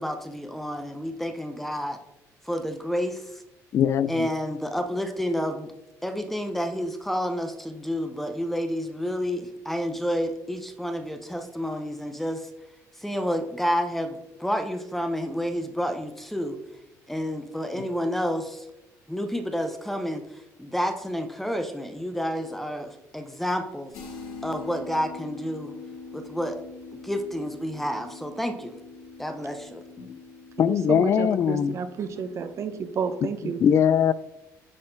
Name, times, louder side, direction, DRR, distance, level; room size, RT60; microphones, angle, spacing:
voice 1, 0.0-2.0 2.4-3.4 4.1-5.7 6.0-12.5 13.0-16.6 17.1-18.7 19.1-20.2 20.6-23.9 24.4-25.7 26.1-26.6 27.0-28.7 29.2-29.8, equal, 5° left, 7 dB, 0.6 m, -29 dB
voice 2, 3.7-4.3 30.0-30.2 30.6-31.8 33.6-34.1, left 8 dB, 45° left, 17 dB, 0.3 m, -21 dB
sound 1, 23.9-33.6, left 4 dB, 85° left, 2.5 m, -44 dB
voice 3, 30.9-33.6, right 6 dB, 45° right, 9 dB, 0.8 m, -31 dB
9.7 x 4.2 x 3.8 m, 0.90 s
cardioid pair, 130°, 7 cm